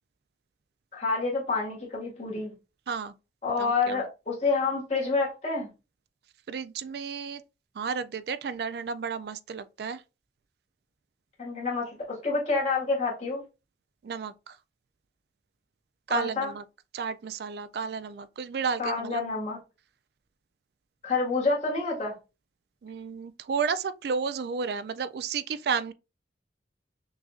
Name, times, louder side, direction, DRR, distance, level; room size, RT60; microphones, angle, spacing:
voice 1, 0.9-2.5 3.4-5.7 11.4-12.0 12.2-13.4 16.1-16.5 18.8-19.6 21.0-22.1, left 4 dB, 40° left, 1.8 m, -28 dB
voice 2, 3.6-4.0 6.5-7.4 7.8-10.0 14.0-14.6 16.1-16.6 16.9-19.2 22.8-25.9, right 6 dB, 60° right, 0.3 m, -32 dB
6.0 x 2.6 x 2.4 m
head